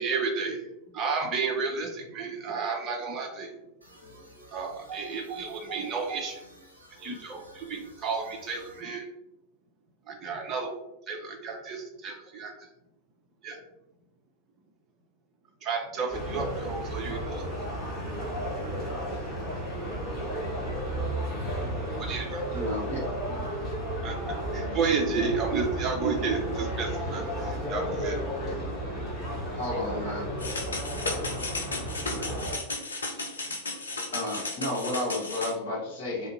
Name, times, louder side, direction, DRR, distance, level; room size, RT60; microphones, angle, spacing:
voice 1, 0.0-3.6 4.5-6.4 7.0-9.1 10.1-10.8 11.1-12.5 13.4-13.6 15.6-17.5 22.0-22.4 24.0-28.2, right 5 dB, 30° right, 1 dB, 0.6 m, -32 dB
sound 1, 3.8-8.8, equal, 85° right, 0.5 m, -52 dB
sound 2, 16.1-32.5, right 1 dB, ahead, 1.3 m, -33 dB
voice 2, 21.3-22.0 27.0-27.2 27.5-28.7, left 2 dB, 20° left, -8 dB, 1.3 m, -38 dB
voice 3, 22.5-23.0 29.5-30.3 33.0-33.3 34.1-36.3, left 2 dB, 50° left, -4 dB, 1.1 m, -32 dB
sound 3, 30.4-35.5, left 3 dB, 75° left, 0.5 m, -34 dB
2.6 x 2.4 x 2.6 m, 0.88 s
figure-of-eight pair, 90°, 0 cm